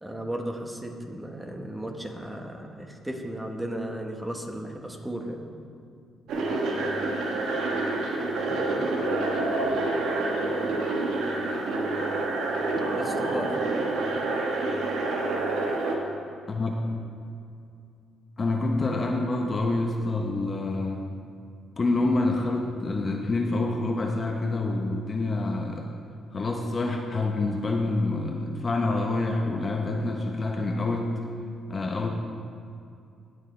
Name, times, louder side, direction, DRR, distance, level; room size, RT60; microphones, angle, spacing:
voice 1, 0.0-5.4 12.9-13.7, right 1 dB, 10° right, 2 dB, 1.4 m, -35 dB
sound 1, 6.3-16.0, right 2 dB, 80° right, 1.3 m, -27 dB
voice 2, 16.5-16.9 18.4-21.0 21.8-25.9 26.3-31.1 31.7-32.1, left 2 dB, 35° left, 2 dB, 1.0 m, -27 dB
17.5 x 6.3 x 3.4 m, 2.4 s
cardioid pair, 75°, 0 cm